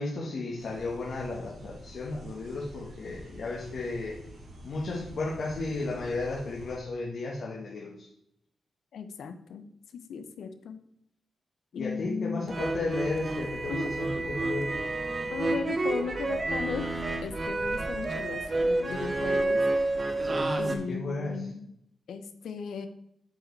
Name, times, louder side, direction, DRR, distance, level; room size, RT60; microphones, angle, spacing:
voice 1, 0.0-4.1 4.6-8.1 11.7-14.7 20.2-21.5, left 2 dB, 60° left, -3 dB, 1.4 m, -34 dB
sound 1, 0.6-6.8, right 1 dB, 75° right, 2.7 m, -48 dB
voice 2, 8.9-9.6 9.9-10.8 11.7-12.5 13.7-13.9 15.3-16.9 17.2-19.6 20.6-21.7 22.1-22.9, left 6 dB, 85° left, 10 dB, 0.7 m, -36 dB
sound 2, 12.5-20.8, right 2 dB, 30° right, 0.9 m, -29 dB
7.8 x 4.9 x 4.6 m, 0.76 s
wide cardioid pair, 130°, 0 cm